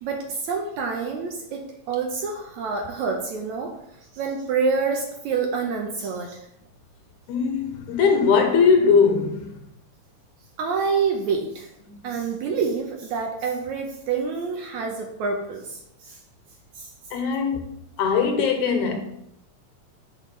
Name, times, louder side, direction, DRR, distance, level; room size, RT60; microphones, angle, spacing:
voice 1, 0.0-3.8 4.1-6.4 10.6-11.7 12.0-16.2 16.8-16.9, right 5 dB, 75° right, 1.8 m, -27 dB
voice 2, 7.3-9.5 17.1-19.0, left 5 dB, 75° left, 2.0 m, -20 dB
10.0 x 5.9 x 3.2 m
omnidirectional pair, 4.0 m